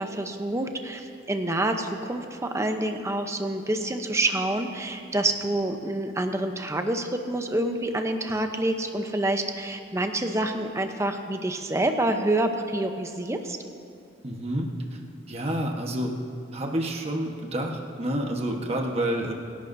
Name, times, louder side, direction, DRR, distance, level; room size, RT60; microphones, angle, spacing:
voice 1, 0.0-13.6, right 1 dB, 15° right, 5 dB, 0.8 m, -27 dB
voice 2, 14.2-14.7 15.3-16.2 16.5-19.3, right 1 dB, 35° right, 1 dB, 1.3 m, -28 dB
25.5 x 11.5 x 2.7 m, 2.6 s
head